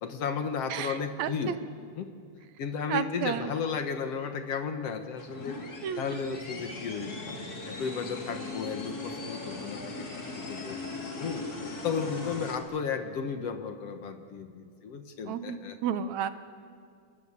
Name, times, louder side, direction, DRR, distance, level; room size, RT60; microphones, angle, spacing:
voice 1, 0.0-1.6 2.0-2.1 2.6-5.6 6.0-7.3 7.6-10.8 11.2-11.5 11.8-15.8, left 6 dB, 60° left, 7 dB, 2.2 m, -34 dB
voice 2, 0.7-1.5 2.9-3.5 5.8-6.0 15.3-16.3, right 9 dB, 75° right, 12 dB, 2.1 m, -32 dB
sound 1, 5.2-12.6, left 3 dB, 30° left, 3.1 m, -39 dB
29.0 x 21.0 x 8.3 m, 2.2 s
omnidirectional pair, 3.4 m